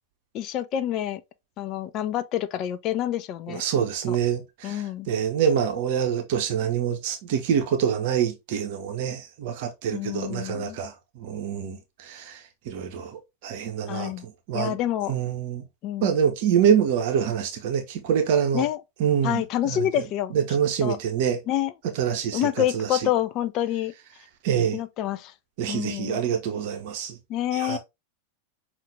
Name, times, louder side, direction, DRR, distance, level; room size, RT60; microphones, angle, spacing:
voice 1, 0.3-1.2 1.6-3.6 4.1-4.2 4.6-5.1 9.9-10.8 13.9-14.3 14.5-15.2 15.8-16.2 18.5-18.8 19.2-20.3 20.8-21.0 21.5-21.7 22.3-23.9 24.7-25.3 25.7-26.2 27.3-27.8, left 12 dB, 35° left, 0.4 m, -27 dB
voice 2, 3.5-14.8 15.1-15.6 16.0-18.7 19.0-19.8 20.3-21.4 21.9-22.5 22.7-23.0 24.4-24.8 25.6-27.2 27.5-27.8, right 8 dB, 50° right, 0.7 m, -26 dB
5.6 x 2.5 x 3.3 m
figure-of-eight pair, 90°, 0 cm